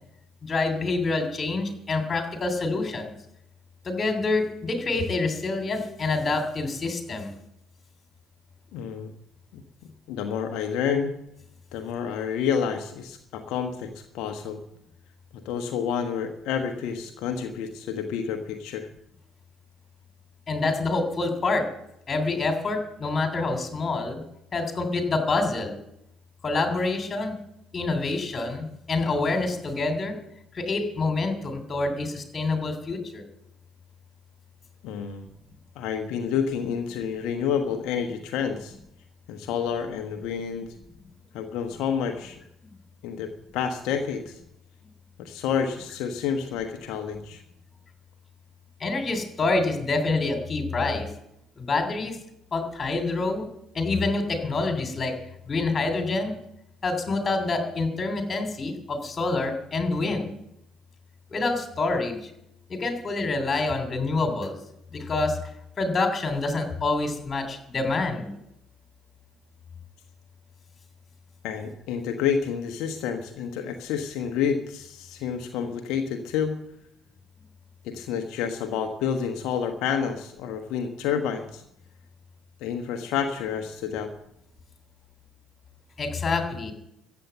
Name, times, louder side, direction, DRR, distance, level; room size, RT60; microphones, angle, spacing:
voice 1, 0.4-3.1 3.8-7.3 20.5-21.7 22.1-24.2 24.5-25.8 26.4-27.3 27.7-30.1 30.5-33.2 48.8-51.1 51.6-52.2 52.5-53.5 53.7-55.1 55.5-56.4 56.8-60.4 61.3-62.3 62.7-64.6 64.9-65.4 65.8-68.4 86.0-86.7, left 3 dB, 35° left, 5 dB, 3.1 m, -27 dB
voice 2, 8.7-9.1 9.5-11.1 11.7-14.6 15.4-18.9 34.8-35.3 35.7-38.8 39.3-40.7 41.3-42.4 43.0-44.4 45.2-47.4 71.4-76.6 77.8-81.6 82.6-84.1, left 7 dB, 65° left, 5 dB, 1.2 m, -29 dB
14.5 x 8.4 x 7.9 m, 0.79 s
figure-of-eight pair, 50°, 0 cm